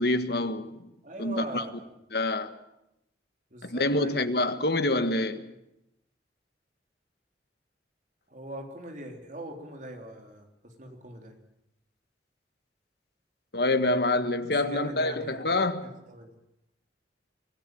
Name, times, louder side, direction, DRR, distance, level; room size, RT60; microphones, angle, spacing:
voice 1, 0.0-0.8 1.2-1.6 2.1-2.5 3.6-5.5 13.5-15.9, left 2 dB, 60° left, 1.7 m, -26 dB
voice 2, 1.0-1.9 3.5-4.3 8.3-11.4 14.6-15.4 15.8-16.3, right 1 dB, 45° right, 3.6 m, -41 dB
24.5 x 17.0 x 9.3 m
head